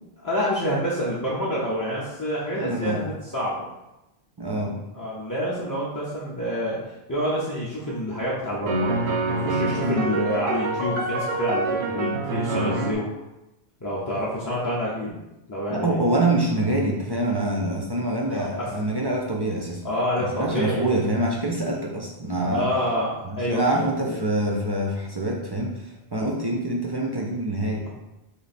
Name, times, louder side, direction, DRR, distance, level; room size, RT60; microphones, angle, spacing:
voice 1, 0.2-3.7 4.9-6.8 7.1-9.0 9.3-13.0 13.8-15.1 15.5-16.0 18.3-18.7 19.8-20.9 22.4-24.2, equal, 25° left, -7 dB, 0.5 m, -27 dB
voice 2, 2.5-3.0 4.4-4.8 9.8-10.1 15.7-19.8 20.2-22.7 23.2-27.8, right 1 dB, 40° right, -2 dB, 0.3 m, -25 dB
sound 1, 7.9-8.0 8.7-12.9, right 2 dB, 90° right, 0.8 m, -26 dB
3.2 x 2.8 x 4.1 m, 0.95 s
omnidirectional pair, 1.1 m